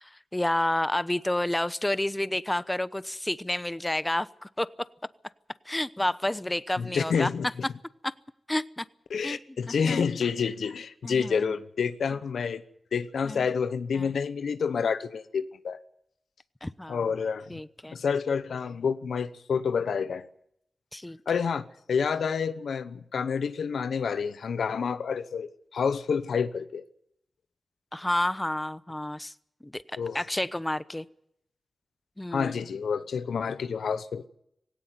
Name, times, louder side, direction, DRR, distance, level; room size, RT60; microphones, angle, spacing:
voice 1, 0.0-4.7 5.7-7.3 8.0-8.1 8.5-8.8 9.2-9.4 9.7-10.1 11.0-11.5 13.2-13.5 14.0-14.1 16.6-17.1 17.5-18.0 20.9-21.2 27.9-29.3 29.6-31.0 32.2-32.5, left 1 dB, 20° left, 0.9 m, -30 dB
voice 2, 6.8-7.5 9.1-12.6 12.9-15.8 16.9-17.4 17.9-20.3 21.3-26.8 30.0-30.2 32.3-34.3, left 6 dB, 90° left, 0.9 m, -28 dB
18.0 x 17.0 x 9.5 m
cardioid pair, 45°, 0 cm